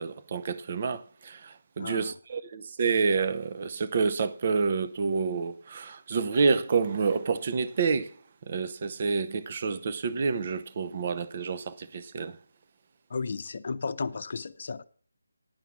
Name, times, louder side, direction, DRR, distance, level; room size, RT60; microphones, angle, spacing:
voice 1, 0.0-8.1 8.5-12.4, right 5 dB, 35° right, 0.7 m, -28 dB
voice 2, 1.8-2.2 13.1-14.8, left 4 dB, 45° left, 0.7 m, -34 dB
10.5 x 5.8 x 7.1 m
figure-of-eight pair, 155°, 0 cm